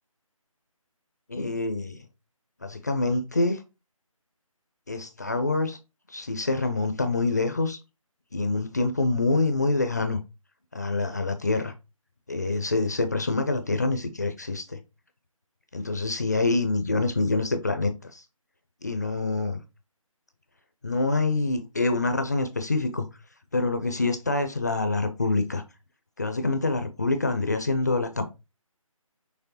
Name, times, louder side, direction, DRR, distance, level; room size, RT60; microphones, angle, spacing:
voice 1, 1.3-2.0 2.6-3.6 4.9-5.8 6.1-7.8 8.3-10.2 10.7-11.7 12.3-14.8 15.7-18.2 18.8-19.6 20.8-23.1 23.5-25.6 26.2-28.3, left 3 dB, 30° left, 0.4 m, -26 dB
6.0 x 3.1 x 2.8 m
figure-of-eight pair, 155°, 18 cm